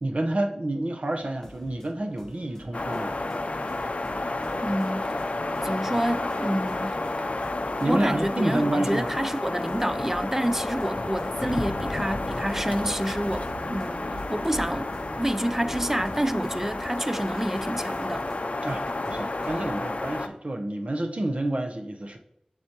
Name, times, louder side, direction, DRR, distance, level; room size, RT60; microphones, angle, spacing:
voice 1, 0.0-3.1 7.8-9.1 18.6-22.2, right 1 dB, 65° right, 0.8 m, -29 dB
sound 1, 1.1-19.8, equal, 15° left, 1.1 m, -46 dB
sound 2, 2.7-20.3, left 2 dB, 70° left, 0.5 m, -31 dB
voice 2, 4.6-5.1 5.6-7.0 7.7-18.2, right 1 dB, 15° right, 0.4 m, -28 dB
Thunder, 11.4-18.6 19.1-19.2, right 1 dB, 90° right, 1.1 m, -42 dB
7.8 x 7.1 x 2.9 m
wide cardioid pair, 55°, 2 cm